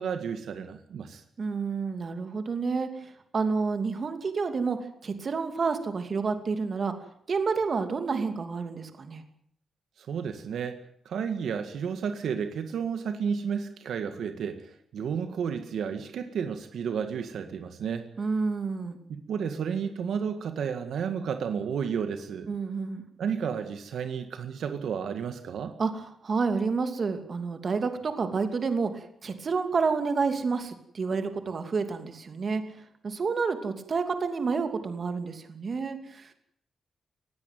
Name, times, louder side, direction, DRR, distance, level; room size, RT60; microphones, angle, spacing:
voice 1, 0.0-1.2 10.0-10.8 11.1-18.1 19.1-22.5 23.2-25.7, right 7 dB, 75° right, 8 dB, 1.9 m, -32 dB
voice 2, 1.4-6.9 7.3-9.2 18.2-19.0 22.5-23.1 25.8-32.6 33.0-36.3, right 4 dB, 40° right, 7 dB, 2.7 m, -29 dB
20.0 x 17.0 x 9.2 m, 0.68 s
wide cardioid pair, 145°, 0 cm